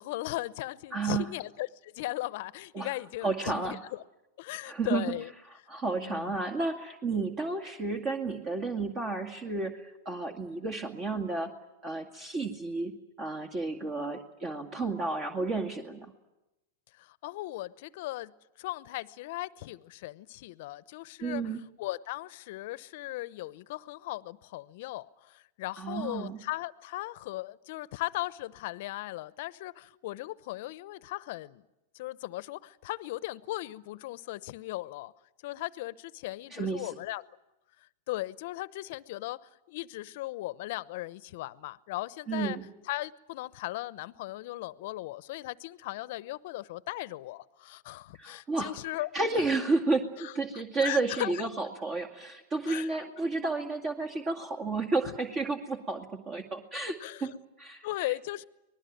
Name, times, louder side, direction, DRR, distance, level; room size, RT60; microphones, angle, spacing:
voice 1, 0.0-4.0 4.4-5.3 6.0-6.4 17.0-18.3 18.6-31.6 31.9-35.1 35.4-37.2 38.1-42.6 42.9-49.1 49.4-49.5 50.2-50.3 50.8-51.5 52.7-52.9 55.1-55.2 56.7-57.4 57.8-58.4, left 17 dB, 60° left, 18 dB, 0.8 m, -37 dB
voice 2, 0.9-1.3 2.7-2.9 3.2-3.8 4.6-5.0 5.7-11.5 11.8-16.1 21.2-21.6 25.8-26.4 36.5-36.9 42.3-42.6 48.2-48.8 49.1-57.3 57.6-57.9, right 3 dB, 30° right, 3 dB, 2.1 m, -32 dB
24.5 x 20.0 x 9.3 m, 0.98 s
hypercardioid pair, 110°, 0 cm